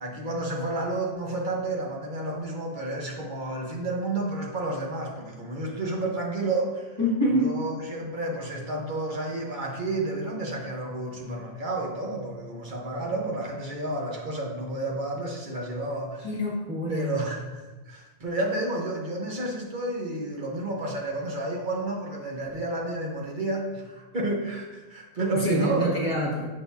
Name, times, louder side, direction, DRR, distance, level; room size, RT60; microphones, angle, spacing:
voice 1, 0.0-7.0 7.3-16.3 16.9-26.1, right 2 dB, 50° right, -1 dB, 1.2 m, -31 dB
voice 2, 7.0-7.5 16.2-17.1 25.4-26.5, equal, 30° left, -5 dB, 1.9 m, -26 dB
8.2 x 5.4 x 2.7 m, 1.2 s
omnidirectional pair, 1.1 m